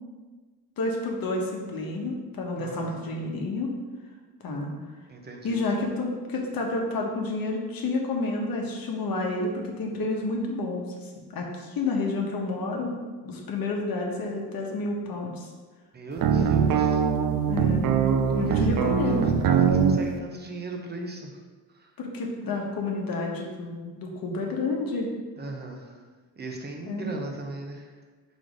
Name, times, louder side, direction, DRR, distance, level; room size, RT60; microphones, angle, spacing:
voice 1, 0.8-3.7 4.4-4.8 5.4-13.0 13.2-15.5 17.4-17.9 18.3-19.3 22.0-25.1 26.9-27.1, left 2 dB, 60° left, 0 dB, 1.2 m, -30 dB
voice 2, 2.6-3.0 5.1-5.6 15.9-17.0 18.3-21.4 21.7-21.9 25.4-26.1 26.3-27.9, right 3 dB, 25° right, 1 dB, 1.0 m, -37 dB
sound 1, 16.2-20.0, right 7 dB, 55° right, 0.6 m, -22 dB
4.6 x 4.2 x 5.1 m, 1.4 s
cardioid pair, 120°, 40 cm